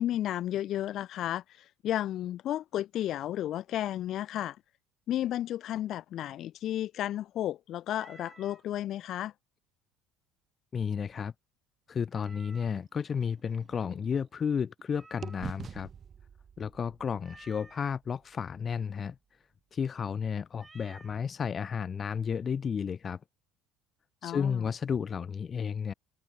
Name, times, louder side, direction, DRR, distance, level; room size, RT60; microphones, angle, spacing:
voice 1, 0.0-4.6 5.1-9.3 24.2-24.6, left 12 dB, 55° left, 1.3 m, -33 dB
Meow, 7.9-8.6 12.1-12.9 14.9-15.7 17.2-17.9 20.5-21.2, right 3 dB, 20° right, 4.5 m, -55 dB
voice 2, 10.7-11.3 11.9-15.9 16.6-19.1 19.7-23.2 24.2-25.9, left 6 dB, 35° left, 1.0 m, -32 dB
sound 1, 12.5-14.8 15.2-19.2, right 7 dB, 40° right, 3.5 m, -48 dB
supercardioid pair, 85°, 0 cm